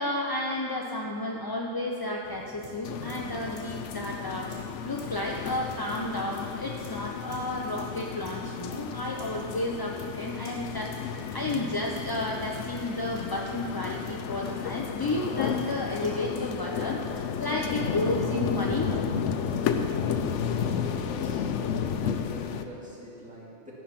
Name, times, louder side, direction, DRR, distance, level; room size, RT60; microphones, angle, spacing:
voice 1, 0.0-4.5 4.8-19.0, left 1 dB, 30° left, -1 dB, 0.4 m, -32 dB
sound 1, 2.2-16.4, left 2 dB, 55° left, 2.0 m, -48 dB
sound 2, 2.8-22.6, left 7 dB, 90° left, 0.9 m, -32 dB
voice 2, 20.7-21.5 22.0-23.7, equal, 5° right, -7 dB, 2.2 m, -44 dB
13.0 x 5.4 x 5.9 m, 2.6 s
omnidirectional pair, 1.2 m